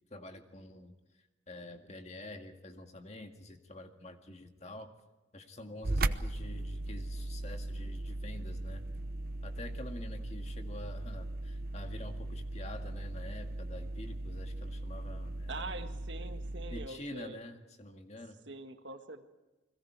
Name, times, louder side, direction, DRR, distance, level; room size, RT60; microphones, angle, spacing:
voice 1, 0.1-4.9 5.3-8.8 9.4-15.8 16.7-18.4, left 1 dB, 35° left, 5 dB, 2.0 m, -47 dB
sound 1, 5.8-16.9, right 2 dB, 50° right, 0.8 m, -38 dB
voice 2, 15.5-17.4 18.5-19.3, right 2 dB, 70° right, 7 dB, 1.7 m, -44 dB
30.0 x 21.5 x 4.8 m, 1.1 s
head